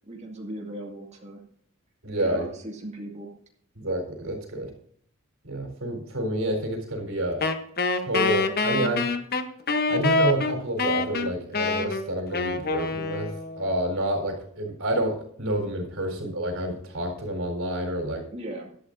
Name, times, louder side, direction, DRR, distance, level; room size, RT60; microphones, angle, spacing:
voice 1, 0.1-1.4 2.2-3.3 16.0-16.1 18.3-18.7, right 1 dB, 30° right, -1 dB, 2.2 m, -37 dB
voice 2, 2.0-2.5 3.8-4.7 5.4-7.4 8.1-9.1 9.9-18.2, right 1 dB, 70° right, 2 dB, 4.3 m, -28 dB
Wind instrument woodwind instrument, 7.4-13.7, left 3 dB, 45° left, 1.0 m, -26 dB
17.0 x 12.0 x 2.6 m, 0.63 s
head